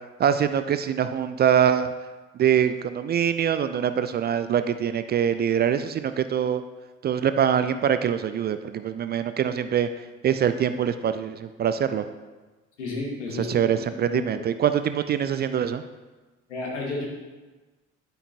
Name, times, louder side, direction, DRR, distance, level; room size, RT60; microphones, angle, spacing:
voice 1, 0.2-1.9 2.4-6.6 7.0-9.9 10.2-12.0 13.4-15.8, right 9 dB, 30° right, 10 dB, 0.4 m, -24 dB
voice 2, 12.8-13.8 14.1-14.2 16.5-17.0, left 2 dB, 75° left, -1 dB, 1.5 m, -32 dB
12.5 x 5.4 x 2.8 m, 1.2 s
figure-of-eight pair, 50°, 36 cm